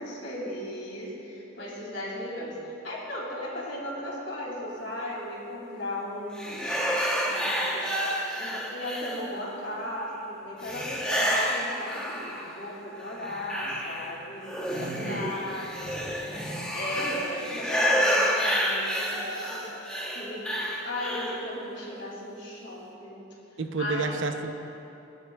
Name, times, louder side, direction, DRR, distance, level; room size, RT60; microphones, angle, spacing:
voice 1, 0.0-6.9 7.3-7.9 8.3-14.5 14.8-16.1 16.7-19.8 20.1-23.2 23.8-24.2, left 1 dB, 60° left, -3 dB, 2.6 m, -37 dB
crazy laugh echo, 6.4-9.5 10.6-12.6 13.0-21.4, equal, 5° left, 0.9 m, -29 dB
voice 2, 14.7-15.3 23.6-24.5, right 3 dB, 70° right, 6 dB, 0.6 m, -31 dB
20.0 x 9.8 x 2.3 m, 3.0 s
head